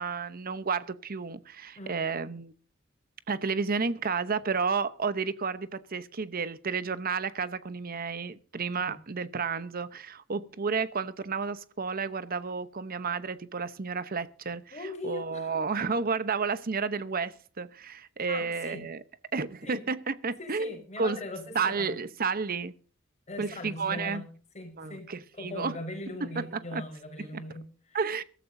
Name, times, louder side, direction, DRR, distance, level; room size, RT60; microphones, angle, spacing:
voice 1, 0.0-2.5 3.3-14.8 15.0-19.0 19.3-20.7 21.0-21.2 21.5-22.7 23.4-24.2 24.8-25.8 26.4-26.8 27.2-27.4 27.9-28.2, right 5 dB, 45° right, 0.9 m, -31 dB
voice 2, 14.7-15.5 18.3-18.8 19.6-19.8 20.4-22.0 23.3-24.3 24.5-25.1 25.4-28.0, left 2 dB, 35° left, 4.5 m, -40 dB
23.0 x 13.5 x 2.7 m
head